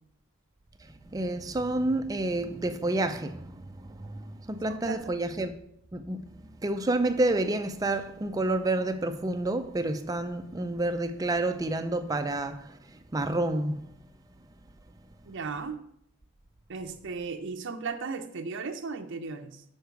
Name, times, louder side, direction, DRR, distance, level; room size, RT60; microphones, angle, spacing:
voice 1, 0.8-5.6 5.9-13.9, right 2 dB, 15° right, 0.4 m, -29 dB
voice 2, 4.7-5.0 15.2-15.8 16.7-19.6, right 4 dB, 60° right, 0.6 m, -36 dB
6.5 x 4.6 x 4.6 m
head